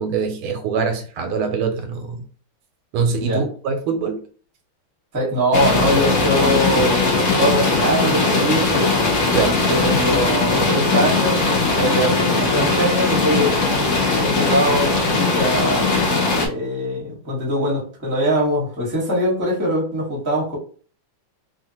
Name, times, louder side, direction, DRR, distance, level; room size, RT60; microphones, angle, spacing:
voice 1, 0.0-2.2 2.9-4.2 9.3-9.6 13.4-13.5, right 5 dB, 80° right, 6 dB, 1.5 m, -23 dB
voice 2, 5.1-9.1 9.6-13.6 14.2-15.9 16.4-20.6, equal, 15° right, -4 dB, 0.7 m, -22 dB
sound 1, 5.5-16.5, left 3 dB, 65° left, 0.7 m, -19 dB
3.4 x 2.4 x 2.8 m, 0.42 s
omnidirectional pair, 2.4 m